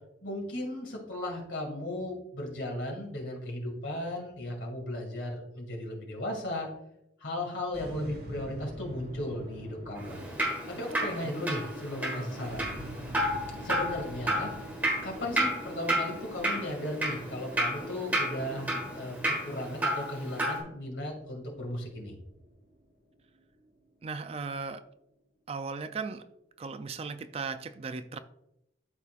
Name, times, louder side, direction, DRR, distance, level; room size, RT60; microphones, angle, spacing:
voice 1, 0.2-6.7 7.2-10.2 10.7-12.7 13.6-14.7 15.0-22.1, left 1 dB, 85° left, 1 dB, 2.2 m, -36 dB
sound 1, 7.7-24.1, equal, 55° right, 1.9 m, -45 dB
Drip, 10.0-20.6, right 1 dB, 10° right, 1.4 m, -32 dB
voice 2, 24.0-24.8 25.5-26.3 26.6-28.2, right 4 dB, 35° right, 11 dB, 0.3 m, -37 dB
12.0 x 4.1 x 2.4 m, 0.83 s
head